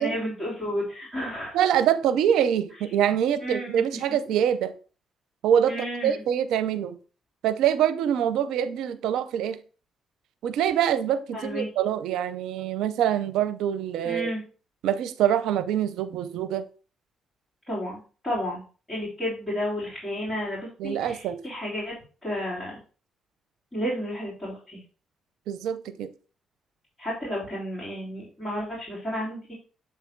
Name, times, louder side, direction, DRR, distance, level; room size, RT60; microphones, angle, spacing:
voice 1, 0.0-1.6 3.4-4.0 5.7-6.2 11.3-11.7 14.0-14.4 17.7-18.0 18.2-18.6 18.9-22.0 22.2-22.8 23.7-24.8 27.0-29.5, equal, 15° left, 3.5 m, -32 dB
voice 2, 1.5-4.7 5.4-5.7 6.0-7.0 7.4-9.6 10.4-14.3 14.8-16.6 20.8-21.4 25.5-26.1, right 9 dB, 85° right, 0.6 m, -25 dB
7.6 x 3.4 x 4.5 m
cardioid pair, 90°, 0 cm